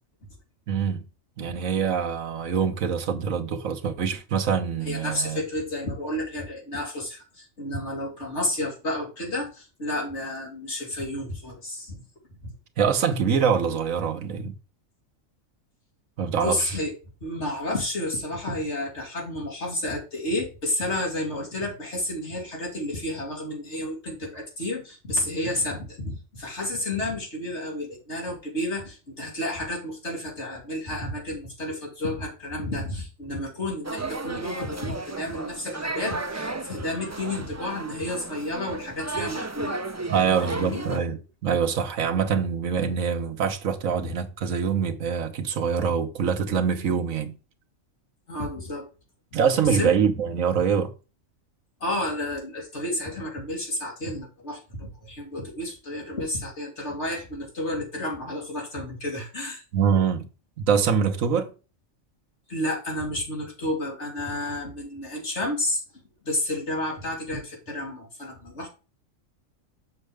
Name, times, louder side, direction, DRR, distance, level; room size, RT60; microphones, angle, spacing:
voice 1, 0.7-1.0 1.4-5.4 12.8-14.5 16.2-16.8 40.1-47.4 49.3-50.9 59.7-60.3 60.7-61.5, right 7 dB, 80° right, 1.4 m, -24 dB
voice 2, 4.8-12.0 16.3-16.9 17.2-39.8 40.1-40.9 48.3-48.9 49.7-49.9 51.8-59.6 62.5-65.8 66.2-68.7, left 1 dB, 55° left, 3.4 m, -31 dB
sound 1, 33.8-41.0, right 3 dB, 25° right, 0.3 m, -34 dB
6.8 x 6.4 x 3.3 m
omnidirectional pair, 1.4 m